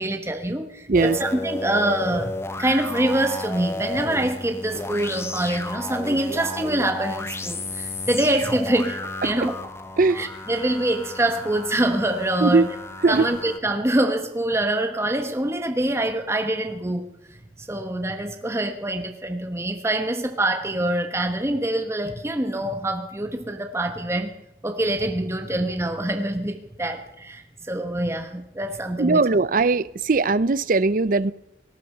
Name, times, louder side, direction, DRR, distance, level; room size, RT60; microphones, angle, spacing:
voice 1, 0.0-9.6 10.1-12.7 13.1-17.1 17.6-24.3 24.6-29.2, right 1 dB, 15° right, 1.2 m, -25 dB
sound 1, 0.9-13.6, left 2 dB, 15° left, 1.0 m, -33 dB
voice 2, 29.0-31.3, right 3 dB, 50° right, 0.5 m, -19 dB
18.5 x 11.5 x 6.7 m
head